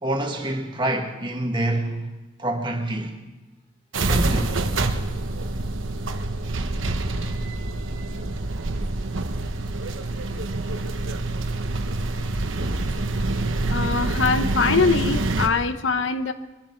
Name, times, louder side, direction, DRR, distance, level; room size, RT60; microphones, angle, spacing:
voice 1, 0.0-2.1 2.4-3.2 4.0-4.6 12.4-12.6, right 1 dB, 25° right, 1.7 m, -27 dB
sound 1, 3.9-15.5, right 2 dB, 85° right, 1.0 m, -26 dB
voice 2, 13.7-16.3, left 4 dB, 80° left, 0.9 m, -22 dB
23.0 x 11.5 x 4.6 m
head